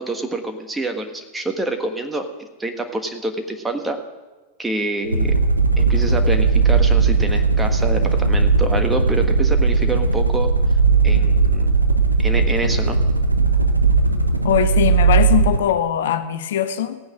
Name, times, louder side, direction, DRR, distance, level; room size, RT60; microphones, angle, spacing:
voice 1, 0.0-4.0 4.6-5.3 5.8-10.5 11.0-11.7 12.2-13.0, right 2 dB, 10° right, 1.4 m, -27 dB
sound 1, 5.0-15.7, right 4 dB, 85° right, 0.8 m, -17 dB
voice 2, 14.4-17.0, left 10 dB, 60° left, 0.7 m, -21 dB
16.0 x 9.4 x 6.4 m
figure-of-eight pair, 90°, 0 cm